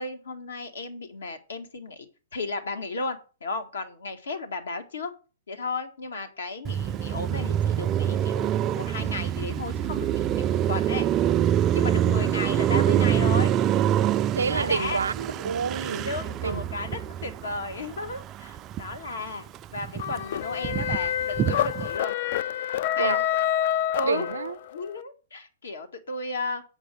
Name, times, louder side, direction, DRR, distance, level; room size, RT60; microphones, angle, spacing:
voice 1, 0.0-5.1 5.5-11.1 11.7-13.5 14.5-15.0 16.0-19.5 19.7-22.2 23.0-23.2 23.9-24.3 24.7-26.6, left 3 dB, 85° left, 1.9 m, -34 dB
Car passing by, 6.6-19.1 19.5-22.0, right 10 dB, 25° right, 0.3 m, -26 dB
voice 2, 14.3-16.1 16.4-16.6 23.0-23.3 24.0-24.6, right 5 dB, 90° right, 0.5 m, -28 dB
sound 1, 20.0-24.8, left 11 dB, 55° left, 0.4 m, -27 dB
8.0 x 4.9 x 6.8 m
hypercardioid pair, 135°, 0 cm